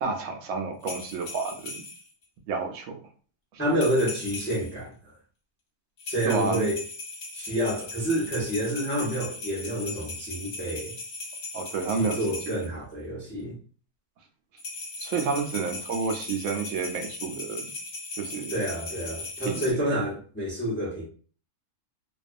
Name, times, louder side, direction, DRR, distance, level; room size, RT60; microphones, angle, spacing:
voice 1, 0.0-1.8 2.5-3.0 3.5-3.6 6.2-6.7 11.5-12.6 15.0-17.7 18.2-18.5 19.4-19.8, right 5 dB, 70° right, 0.8 m, -30 dB
sound 1, 0.8-2.1 3.7-4.8 6.0-12.7 14.6-19.7, left 3 dB, 50° left, 0.9 m, -38 dB
voice 2, 3.6-4.9 6.1-6.8 7.3-10.9 12.0-13.6 18.5-21.0, equal, 15° left, 0.4 m, -28 dB
2.4 x 2.3 x 2.5 m
omnidirectional pair, 1.6 m